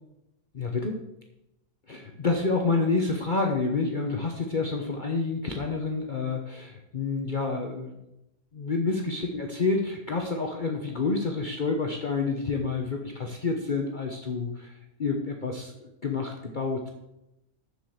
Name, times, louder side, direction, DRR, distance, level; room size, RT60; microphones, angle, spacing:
voice 1, 0.5-1.0 1.9-8.0 8.5-14.7 15.0-16.9, left 4 dB, 40° left, 2 dB, 1.0 m, -28 dB
7.3 x 7.2 x 6.5 m, 0.89 s
omnidirectional pair, 1.5 m